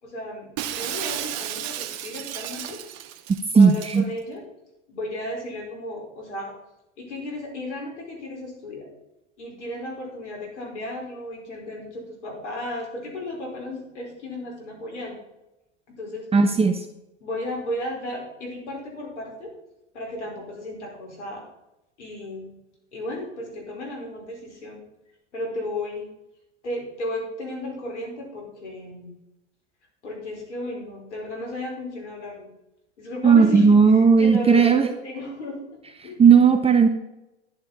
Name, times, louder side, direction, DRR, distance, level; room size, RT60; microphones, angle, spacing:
voice 1, 0.0-2.8 3.5-4.4 4.9-6.5 7.0-8.9 9.4-15.2 15.9-16.3 17.2-19.5 19.9-21.4 22.0-22.5 22.9-24.8 25.3-26.1 26.6-29.1 30.0-32.5 33.0-36.2, left 1 dB, 80° left, 0 dB, 4.8 m, -34 dB
Shatter, 0.6-4.0, right 12 dB, 45° right, 1.1 m, -33 dB
voice 2, 3.6-4.0 16.3-16.8 33.2-34.9 36.2-36.9, right 5 dB, 15° right, 7 dB, 0.9 m, -15 dB
11.0 x 10.5 x 4.2 m, 0.91 s
hypercardioid pair, 95°, 35 cm